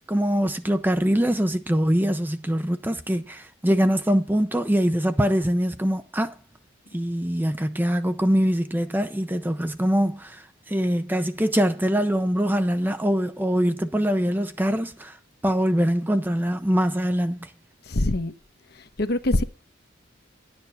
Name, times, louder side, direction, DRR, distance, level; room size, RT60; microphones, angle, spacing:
voice 1, 0.1-6.4 6.9-15.2 15.4-17.5, equal, 10° right, 0.6 m, -23 dB
voice 2, 17.9-18.3 19.0-19.4, left 1 dB, 55° left, 1.0 m, -23 dB
11.0 x 6.9 x 5.6 m
head